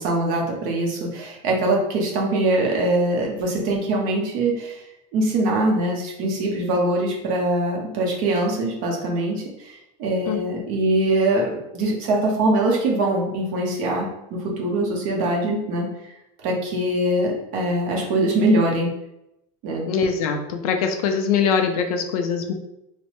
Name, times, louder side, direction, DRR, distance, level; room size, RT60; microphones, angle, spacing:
voice 1, 0.0-4.8 5.1-9.7 10.0-15.9 16.4-18.9 19.6-19.8, right 1 dB, 45° right, -1 dB, 0.9 m, -22 dB
voice 2, 19.9-22.5, left 6 dB, 75° left, 5 dB, 0.5 m, -22 dB
3.1 x 2.1 x 3.0 m, 0.84 s
supercardioid pair, 155°, 19 cm